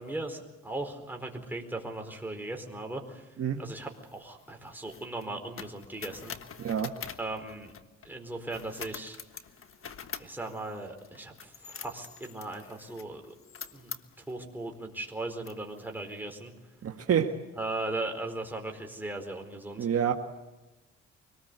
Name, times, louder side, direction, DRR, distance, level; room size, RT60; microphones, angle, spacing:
voice 1, 0.0-6.3 7.2-7.7 8.0-9.2 10.2-13.3 13.7-14.0 14.3-16.5 17.6-19.9, right 2 dB, 5° right, 2 dB, 4.3 m, -38 dB
sound 1, 3.8-8.1 8.5-14.3 14.9-15.1 15.4-16.1, left 7 dB, 45° left, 1.4 m, -45 dB
voice 2, 6.6-6.9 16.8-17.3 19.8-20.1, right 8 dB, 50° right, 3 dB, 1.6 m, -27 dB
24.5 x 19.5 x 8.2 m, 1.1 s
cardioid pair, 90°, 30 cm